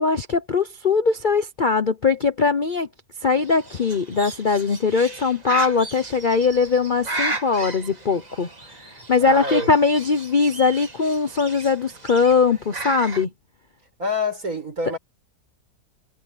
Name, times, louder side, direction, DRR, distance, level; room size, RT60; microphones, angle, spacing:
voice 1, 0.0-2.9 3.2-13.3 14.9-15.0, left 4 dB, 40° left, 0.8 m, -21 dB
Bird, 3.4-13.2, right 2 dB, 25° right, 2.2 m, -35 dB
voice 2, 9.2-9.7 14.0-15.0, left 2 dB, 55° right, 6.9 m, -26 dB
omnidirectional pair, 1.8 m